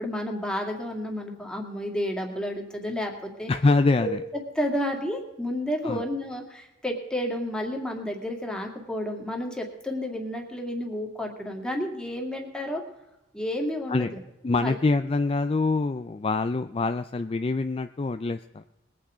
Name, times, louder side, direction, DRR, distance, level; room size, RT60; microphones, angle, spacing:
voice 1, 0.0-3.5 4.0-4.2 4.6-12.8 13.3-14.2 14.6-14.8, equal, 5° left, 1 dB, 2.3 m, -31 dB
voice 2, 3.5-4.2 5.8-6.0 13.9-14.1 14.4-18.6, left 3 dB, 30° left, 9 dB, 0.4 m, -25 dB
21.0 x 8.6 x 5.0 m, 0.96 s
head